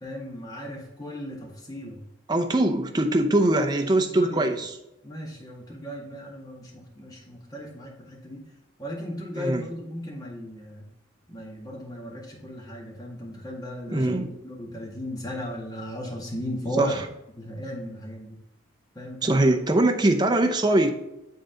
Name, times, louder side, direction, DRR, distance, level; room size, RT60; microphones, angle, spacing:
voice 1, 0.0-2.0 4.1-4.5 5.0-8.4 8.8-10.9 11.3-17.0 17.4-18.4 18.9-19.5, equal, 20° left, -3 dB, 1.8 m, -36 dB
voice 2, 2.3-4.8 9.3-9.6 13.9-14.3 16.8-17.0 19.2-20.9, right 1 dB, 20° right, 4 dB, 0.6 m, -22 dB
9.3 x 3.9 x 3.8 m, 0.91 s
head